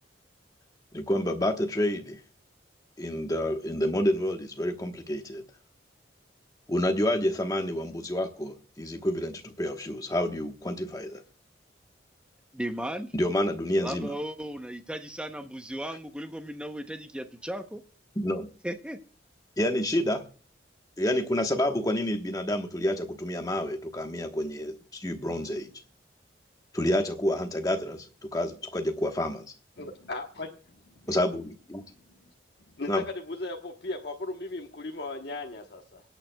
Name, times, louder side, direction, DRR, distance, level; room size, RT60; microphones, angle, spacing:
voice 1, 0.9-2.2 3.0-5.4 6.7-11.2 13.1-14.1 18.2-18.5 19.6-20.2 21.0-25.7 26.7-29.4 31.1-31.8 32.9-33.0, left 1 dB, 20° left, 1.1 m, -28 dB
voice 2, 12.5-13.1 13.8-17.8 18.6-19.0, right 1 dB, 5° right, 0.8 m, -36 dB
voice 3, 29.8-31.1 31.9-32.3 32.8-36.0, left 2 dB, 60° left, 1.1 m, -37 dB
25.0 x 8.9 x 2.3 m
head